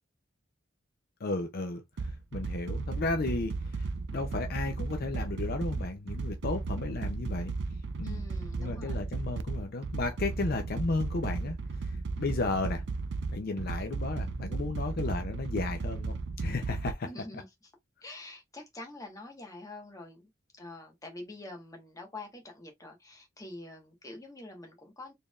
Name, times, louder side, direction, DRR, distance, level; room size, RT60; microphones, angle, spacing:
voice 1, 1.2-7.5 8.0-8.2 8.6-12.8 13.3-16.1 16.4-17.1, left 3 dB, 50° left, 0.5 m, -34 dB
sound 1, 2.0-16.9, right 3 dB, 65° right, 0.4 m, -35 dB
voice 2, 8.0-9.0 17.0-17.5 18.0-20.3 20.6-25.1, left 2 dB, 20° left, 1.2 m, -46 dB
4.2 x 3.4 x 2.3 m
head